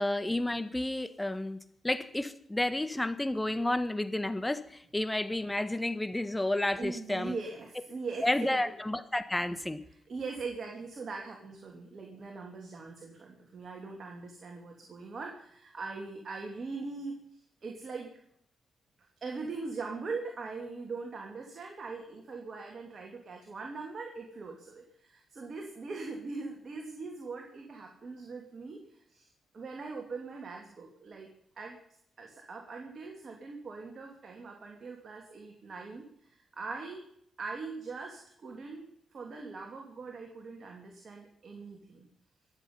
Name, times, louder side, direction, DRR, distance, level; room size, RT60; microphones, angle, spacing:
voice 1, 0.0-1.6 1.8-4.6 4.9-7.3 8.2-9.8, left 1 dB, 15° left, 11 dB, 1.6 m, -31 dB
voice 2, 6.8-8.7 10.1-17.2 17.6-18.1 19.2-29.3 29.5-31.3 31.6-31.8 32.2-37.0 37.4-42.1, right 4 dB, 55° right, 1 dB, 3.0 m, -41 dB
22.5 x 8.1 x 5.7 m, 0.70 s
supercardioid pair, 45°, 0 cm